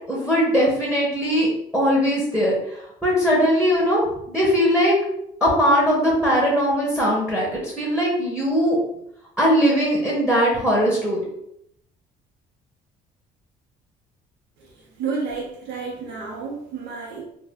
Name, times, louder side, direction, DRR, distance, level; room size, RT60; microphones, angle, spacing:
voice 1, 0.1-2.6 3.0-4.0 4.3-5.0 5.4-8.8 9.4-11.2, equal, 5° right, -4 dB, 0.9 m, -20 dB
voice 2, 15.0-17.2, right 5 dB, 80° right, -4 dB, 0.8 m, -30 dB
2.6 x 2.2 x 3.4 m, 0.75 s
cardioid pair, 110°, 17 cm